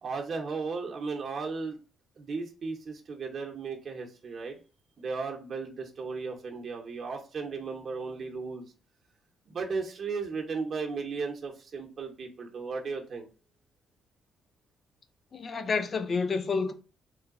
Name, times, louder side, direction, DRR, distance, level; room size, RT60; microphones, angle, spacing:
voice 1, 0.0-1.8 2.2-4.6 5.0-8.7 9.5-13.3, right 4 dB, 50° right, 0.7 m, -35 dB
voice 2, 15.3-16.7, left 4 dB, 45° left, 0.5 m, -29 dB
3.1 x 2.2 x 3.6 m
cardioid pair, 90°, 0 cm